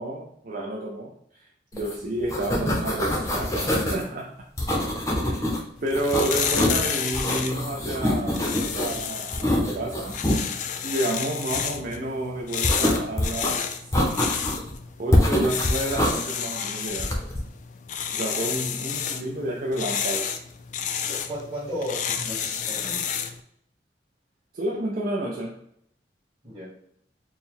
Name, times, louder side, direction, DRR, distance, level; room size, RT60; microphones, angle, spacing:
voice 1, 0.0-1.4 1.7-4.5 5.2-10.2 10.8-13.7 15.0-17.2 18.1-20.3 24.5-25.6, right 1 dB, 50° right, 0.5 m, -30 dB
sound 1, 1.8-1.9 2.2-4.0 4.6-5.6 5.9-6.8 7.1-9.0 9.3-10.4 12.6-13.5 13.9-14.7 15.1-16.2 17.0-17.4, left 1 dB, 15° left, 0.6 m, -24 dB
sound 2, 5.8-23.4, left 8 dB, 45° left, 0.3 m, -31 dB
voice 2, 21.0-23.0 26.4-26.7, equal, 30° right, 1.4 m, -34 dB
4.4 x 2.2 x 3.6 m
head